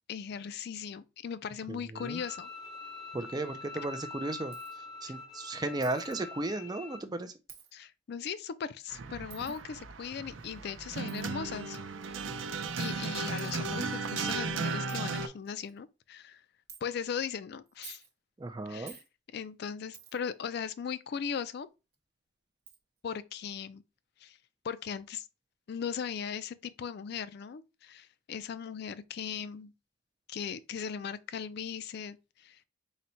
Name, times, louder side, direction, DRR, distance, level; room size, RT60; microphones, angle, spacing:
voice 1, 0.1-2.5 7.7-11.8 12.8-16.4 16.8-18.0 18.7-19.0 19.3-21.7 23.0-23.8 24.2-24.4 24.6-25.3 25.7-29.7 30.3-32.7, left 7 dB, 50° left, 0.3 m, -38 dB
voice 2, 1.7-2.2 3.1-4.5 5.0-7.3 18.4-19.0, right 2 dB, 20° right, 0.4 m, -35 dB
Bowed string instrument, 2.0-7.0, left 3 dB, 20° left, 0.7 m, -45 dB
Coin (dropping), 4.5-4.8 5.8-6.2 7.5-7.7 9.3-9.6 11.1-11.3 12.2-12.3 13.0-13.1 13.4-13.5 14.2-14.3 14.5-14.6 14.9-15.0 15.5-15.8 16.7-16.8 17.7-18.1 18.9-19.1 19.9-20.3 21.9-22.0 22.7-22.8, right 8 dB, 50° right, 0.9 m, -50 dB
sound 1, 8.9-15.3, right 4 dB, 70° right, 0.5 m, -35 dB
4.0 x 2.2 x 4.3 m
head